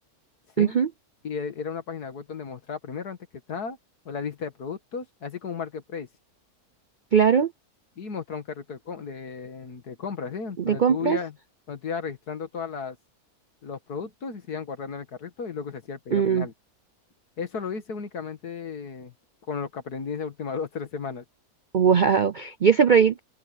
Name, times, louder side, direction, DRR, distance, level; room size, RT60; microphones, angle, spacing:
voice 1, 0.6-0.9 7.1-7.5 10.6-11.2 16.1-16.5 21.7-23.2, right 7 dB, 60° right, 0.5 m, -20 dB
voice 2, 1.2-3.2 3.5-3.8 4.1-6.1 8.0-11.4 11.7-13.0 13.6-16.5 17.4-19.1 19.5-21.2, left 6 dB, 90° left, 2.3 m, -34 dB
omnidirectional pair, 1.6 m